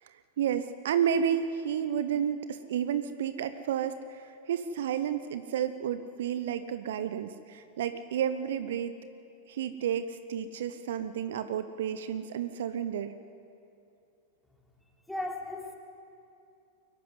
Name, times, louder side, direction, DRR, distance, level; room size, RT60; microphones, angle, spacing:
voice 1, 0.0-9.0 9.5-13.1, right 9 dB, 65° right, 11 dB, 0.8 m, -31 dB
voice 2, 15.1-15.8, left 2 dB, 5° left, 0 dB, 3.4 m, -35 dB
23.5 x 14.0 x 9.6 m, 2.7 s
figure-of-eight pair, 95°, 0 cm